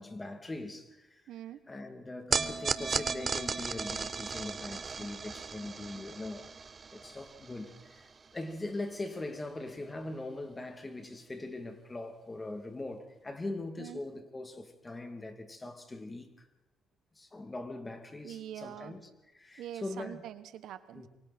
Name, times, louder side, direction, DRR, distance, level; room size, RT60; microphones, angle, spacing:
voice 1, 0.0-1.2 1.7-6.4 6.9-16.5 17.1-19.0 19.3-20.2 20.9-21.1, left 2 dB, 20° left, 2.9 m, -41 dB
voice 2, 1.3-1.6 13.8-14.0 18.2-18.9 19.6-21.1, right 11 dB, 80° right, 1.1 m, -44 dB
sound 1, 2.3-8.7, right 5 dB, 40° right, 1.4 m, -36 dB
28.0 x 23.5 x 4.4 m
cardioid pair, 90°, 0 cm